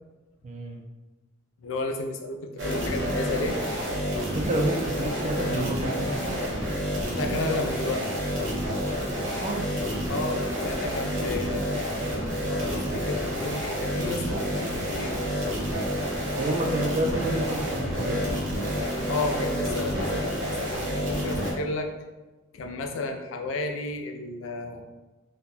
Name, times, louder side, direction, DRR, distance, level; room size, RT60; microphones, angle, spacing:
voice 1, 0.4-0.8 4.2-6.4 9.2-9.7 16.4-18.2, right 2 dB, 35° right, 1 dB, 0.5 m, -29 dB
voice 2, 1.6-3.6 7.2-8.1 10.1-11.7 12.4-15.2 19.1-21.9 22.5-24.8, left 2 dB, 80° left, 4 dB, 0.4 m, -32 dB
sound 1, 2.6-21.5, equal, 75° right, 0.8 m, -29 dB
2.7 x 2.2 x 4.0 m, 1.2 s
head